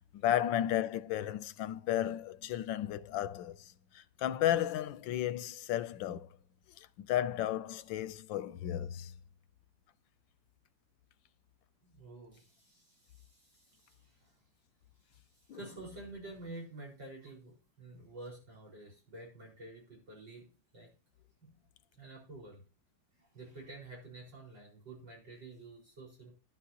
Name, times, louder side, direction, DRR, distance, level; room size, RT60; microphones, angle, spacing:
voice 1, 0.1-6.3 6.8-9.1 15.5-15.6, left 12 dB, 90° left, 1.4 m, -34 dB
voice 2, 11.8-14.4 15.1-20.5 20.7-20.9 21.4-21.5 22.0-22.6 23.2-26.3, right 2 dB, 75° right, 5.7 m, -50 dB
11.5 x 11.0 x 2.9 m
omnidirectional pair, 2.0 m